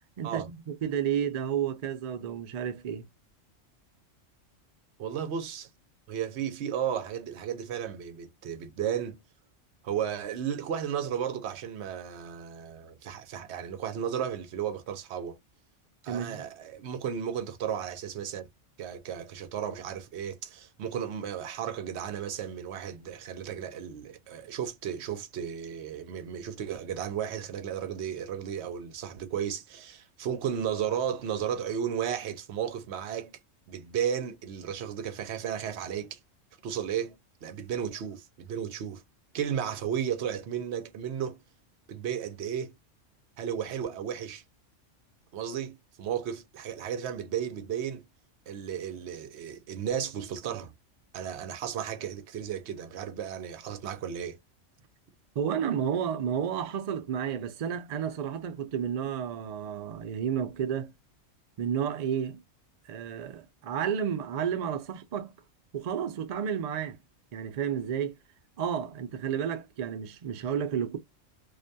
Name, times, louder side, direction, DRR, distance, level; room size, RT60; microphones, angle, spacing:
voice 1, 0.2-3.1 16.1-16.4 55.4-60.9 61.6-62.4 62.9-65.3 65.7-67.0 67.3-68.1 68.6-71.0, right 8 dB, 90° right, 0.3 m, -31 dB
voice 2, 5.0-5.7 6.1-9.2 9.8-15.4 16.0-18.4 18.8-33.4 33.7-36.2 36.6-39.0 39.3-41.4 41.9-42.7 43.4-44.4 45.3-48.1 48.5-50.7 51.1-54.4, right 8 dB, 65° right, 0.8 m, -34 dB
2.5 x 2.2 x 2.5 m
omnidirectional pair, 1.3 m